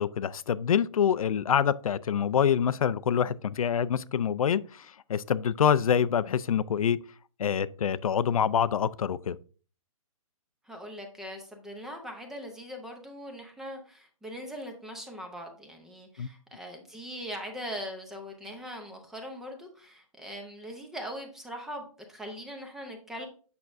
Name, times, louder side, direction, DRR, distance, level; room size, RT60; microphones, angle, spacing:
voice 1, 0.0-7.0 7.4-9.4 16.2-16.3, left 8 dB, 80° left, 0.5 m, -26 dB
voice 2, 10.6-23.3, equal, ahead, 0.5 m, -41 dB
8.2 x 6.0 x 2.5 m
hypercardioid pair, 165°, 18 cm